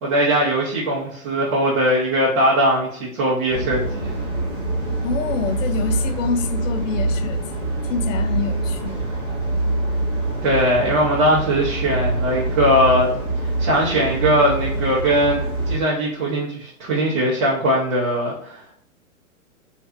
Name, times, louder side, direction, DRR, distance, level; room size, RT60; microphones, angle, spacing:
voice 1, 0.0-4.1 10.4-13.1 13.6-15.4 15.6-18.7, equal, 70° right, -6 dB, 1.0 m, -20 dB
sound 1, 3.5-15.8, right 2 dB, 15° right, 0.4 m, -25 dB
voice 2, 5.0-7.4 7.8-9.0, left 5 dB, 65° left, 8 dB, 0.5 m, -26 dB
2.5 x 2.5 x 2.3 m, 0.66 s
hypercardioid pair, 125°, 43 cm